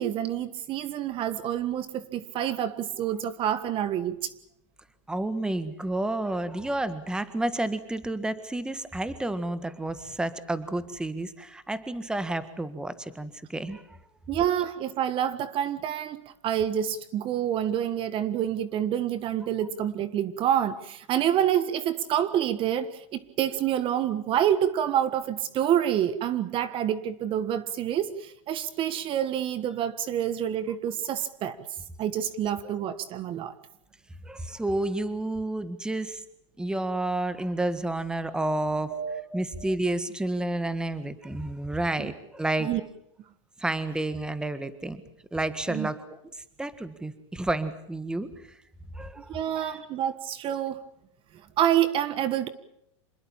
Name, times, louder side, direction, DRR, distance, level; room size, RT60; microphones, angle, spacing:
voice 1, 0.0-4.3 14.3-31.6 32.0-33.6 38.9-39.2 39.6-39.8 42.0-42.1 42.6-42.8 45.7-45.9 49.3-50.9 51.6-52.5, right 10 dB, 35° right, 1.4 m, -27 dB
voice 2, 5.1-13.8 34.2-36.2 36.6-38.9 39.2-42.7 43.6-45.0 45.3-46.0 46.6-48.3 48.9-49.8, right 2 dB, 5° right, 1.6 m, -30 dB
27.0 x 20.5 x 7.4 m
supercardioid pair, 135°, 16 cm